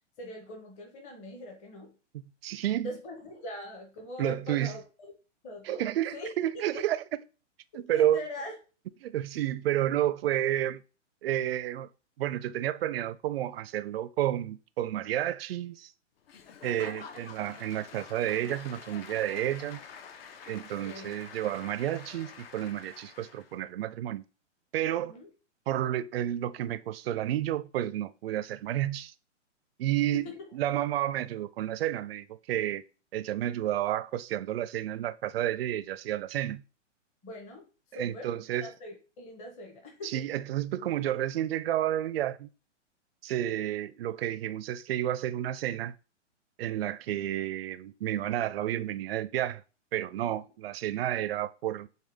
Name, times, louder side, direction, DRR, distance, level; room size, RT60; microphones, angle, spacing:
voice 1, 0.2-1.9 2.8-5.1 5.4-5.9 6.1-6.3 6.7-6.9 7.9-8.5 16.6-17.0 20.8-21.2 25.1-25.3 30.1-30.4 37.2-37.6 37.9-40.2 50.2-50.4, left 1 dB, 20° left, 0.9 m, -42 dB
voice 2, 2.1-2.9 4.2-4.7 5.6-7.0 7.7-8.2 9.0-10.8 11.2-11.9 12.2-15.9 16.6-19.8 20.5-24.2 24.7-25.1 25.7-29.1 29.8-30.3 30.5-32.8 33.1-36.6 37.9-38.7 40.0-42.5 43.2-45.9 46.6-49.6 49.9-51.9, right 12 dB, 55° right, 0.4 m, -31 dB
Applause / Crowd, 16.3-23.6, left 6 dB, 50° left, 0.7 m, -47 dB
6.4 x 2.3 x 3.4 m
hypercardioid pair, 130°, 37 cm